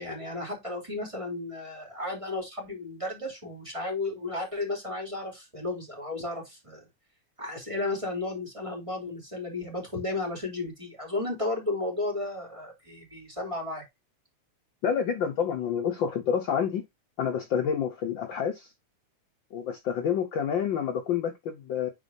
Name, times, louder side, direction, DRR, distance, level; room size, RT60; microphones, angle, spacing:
voice 1, 0.0-6.8 7.4-13.8, left 2 dB, 10° right, 2.8 m, -33 dB
voice 2, 14.8-16.8 17.2-18.7 19.5-21.9, left 8 dB, 70° left, 1.1 m, -28 dB
10.5 x 4.2 x 2.7 m
omnidirectional pair, 3.4 m